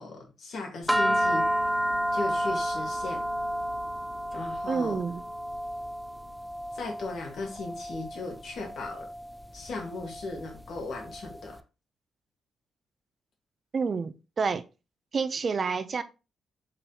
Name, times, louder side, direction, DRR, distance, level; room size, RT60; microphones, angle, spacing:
voice 1, 0.0-1.5 2.1-3.2 4.3-5.0 6.7-9.1 9.5-11.6, left 3 dB, 70° left, 1.8 m, -37 dB
sound 1, 0.9-11.4, equal, 5° left, 0.5 m, -31 dB
voice 2, 4.7-5.2 13.7-14.6 15.1-16.0, right 5 dB, 50° right, 0.6 m, -28 dB
4.7 x 3.8 x 2.9 m
supercardioid pair, 50°, 0 cm